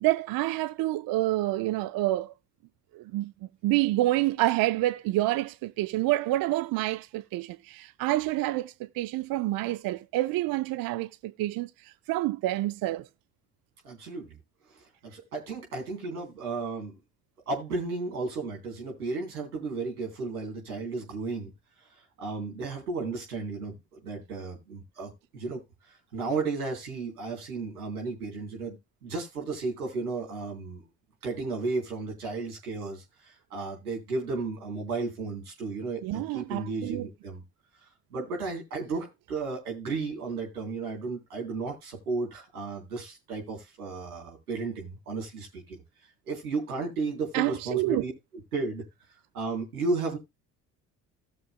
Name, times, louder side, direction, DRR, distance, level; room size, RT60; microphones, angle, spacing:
voice 1, 0.0-2.3 2.9-3.3 3.6-13.1 36.0-37.1 47.3-48.0, right 17 dB, 50° right, 0.6 m, -28 dB
voice 2, 13.8-14.4 14.7-17.0 17.5-21.5 22.2-25.6 25.9-28.8 29.0-30.8 31.2-37.4 38.1-45.8 46.3-48.1 48.5-48.9 49.3-50.2, right 3 dB, 85° right, 3.5 m, -34 dB
17.5 x 6.8 x 2.2 m
hypercardioid pair, 55°, 44 cm